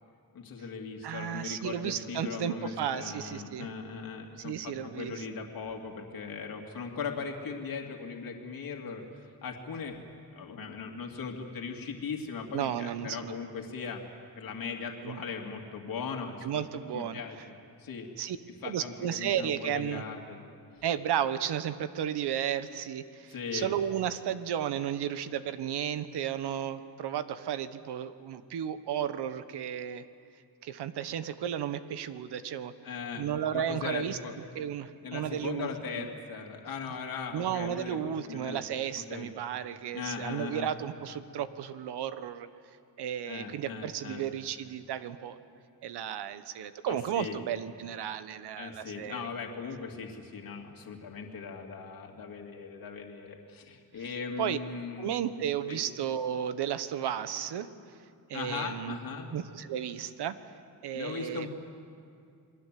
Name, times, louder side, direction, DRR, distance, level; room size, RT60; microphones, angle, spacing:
voice 1, 0.3-9.0 9.4-10.0 10.3-14.0 14.4-16.6 16.9-17.4 17.8-18.1 18.6-20.4 23.3-23.7 32.8-33.3 33.5-34.4 35.0-38.6 39.1-39.3 39.9-40.7 43.3-44.3 46.9-47.4 48.6-55.1 55.7-55.8 58.3-59.3 60.9-61.6, left 5 dB, 55° left, 2 dB, 2.5 m, -39 dB
voice 2, 1.0-3.7 4.4-5.2 12.5-13.3 15.0-15.2 16.4-17.2 18.2-18.4 18.6-20.0 20.8-30.1 30.6-32.7 33.2-34.2 34.5-35.7 35.9-36.1 37.3-42.5 43.0-45.4 45.8-49.3 54.4-54.6 55.0-57.7 58.3-59.0 59.3-60.5 60.8-61.5, right 9 dB, 75° right, 12 dB, 1.2 m, -33 dB
28.5 x 21.0 x 7.6 m, 2.3 s
cardioid pair, 125°, 40 cm